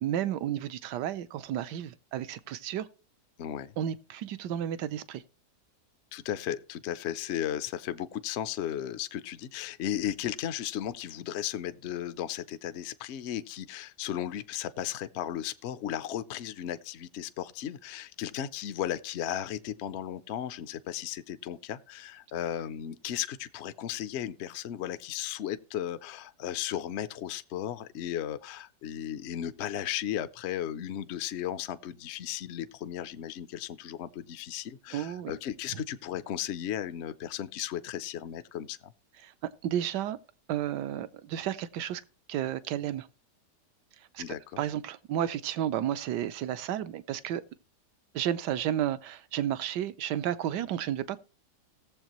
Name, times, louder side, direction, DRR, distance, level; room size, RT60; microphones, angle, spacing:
voice 1, 0.0-2.9 3.8-5.2 34.9-35.3 35.7-35.8 39.2-39.3 39.6-40.2 40.5-42.0 42.3-43.1 44.1-47.4 48.1-51.2, right 11 dB, 80° right, 1.3 m, -32 dB
voice 2, 3.4-3.7 6.1-38.9 44.2-44.6, left 11 dB, 65° left, 0.6 m, -35 dB
18.0 x 7.3 x 3.0 m
omnidirectional pair, 1.8 m